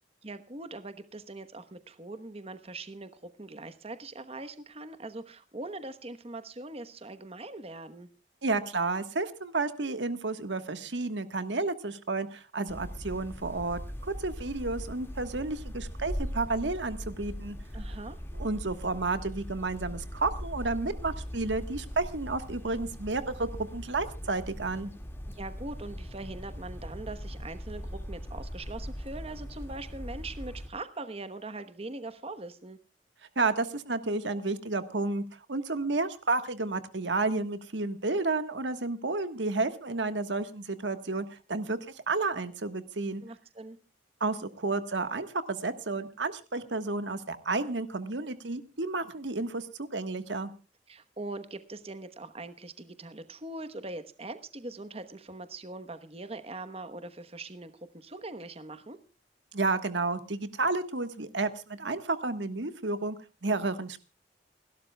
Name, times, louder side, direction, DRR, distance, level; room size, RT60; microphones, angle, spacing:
voice 1, 0.2-8.1 17.7-18.2 25.3-32.8 43.2-43.8 50.9-59.0, right 2 dB, 35° right, 11 dB, 1.1 m, -42 dB
voice 2, 8.4-17.5 18.3-24.9 33.3-35.2 35.5-43.2 44.2-50.5 59.5-63.2 63.4-64.0, right 3 dB, 90° right, 10 dB, 1.4 m, -31 dB
sound 1, 12.7-30.7, equal, 15° left, 2.0 m, -40 dB
29.5 x 12.0 x 2.3 m, 0.33 s
head